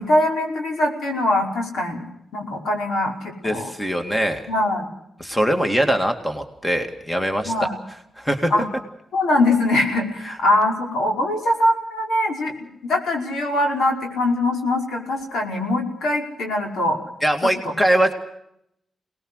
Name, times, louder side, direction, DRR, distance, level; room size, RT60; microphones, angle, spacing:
voice 1, 0.0-2.0 2.3-3.2 3.4-3.7 4.5-4.9 7.4-7.8 8.5-8.7 9.1-17.0, left 1 dB, 90° left, 2 dB, 5.3 m, -22 dB
voice 2, 3.4-4.4 5.2-7.5 8.2-8.5 17.2-18.1, right 1 dB, 5° left, 5 dB, 2.2 m, -22 dB
27.5 x 19.5 x 6.5 m, 0.76 s
wide cardioid pair, 135°, 0 cm